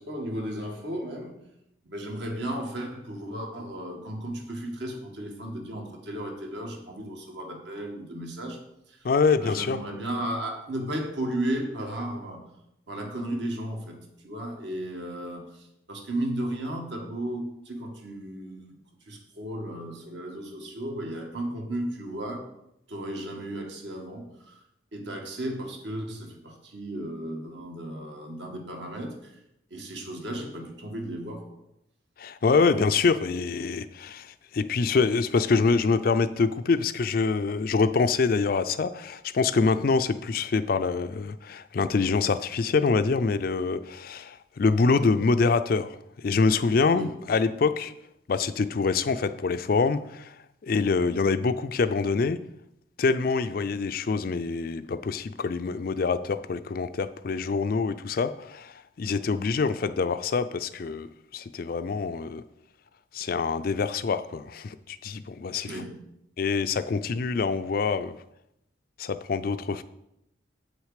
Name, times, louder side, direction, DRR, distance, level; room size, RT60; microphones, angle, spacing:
voice 1, 0.0-1.4 1.8-8.6 8.9-9.0 9.3-12.5 12.9-14.0 14.2-18.7 19.1-22.5 22.9-24.6 24.9-29.3 29.7-31.4 32.6-33.0 46.9-47.2 65.6-66.1, right 1 dB, 65° right, 2 dB, 1.7 m, -34 dB
voice 2, 9.0-9.8 32.2-47.9 48.3-50.3 50.6-52.4 53.0-61.1 61.3-62.4 63.1-65.8 66.4-68.1 69.0-69.8, left 4 dB, 50° left, 12 dB, 0.4 m, -25 dB
8.0 x 6.4 x 5.0 m, 0.81 s
head